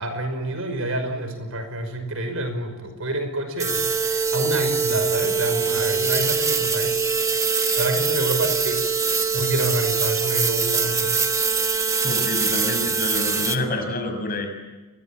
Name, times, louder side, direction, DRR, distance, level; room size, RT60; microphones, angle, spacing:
voice 1, 0.0-7.1 7.5-8.8 9.3-11.2, right 1 dB, 65° right, 8 dB, 5.7 m, -28 dB
sound 1, 3.6-13.6, right 5 dB, 15° right, 1.4 m, -23 dB
voice 2, 12.0-14.6, left 2 dB, 40° left, 5 dB, 6.8 m, -27 dB
29.0 x 23.0 x 8.8 m, 1.2 s
head